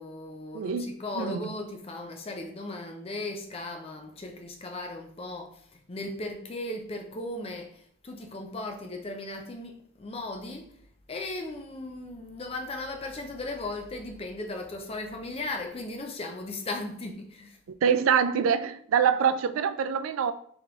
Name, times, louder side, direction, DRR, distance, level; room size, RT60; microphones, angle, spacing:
voice 1, 0.0-10.8 11.1-17.6, left 2 dB, 30° left, 0.5 m, -37 dB
voice 2, 0.5-0.9 1.2-1.4 17.7-20.3, right 7 dB, 85° right, 0.3 m, -25 dB
3.7 x 3.0 x 3.7 m
head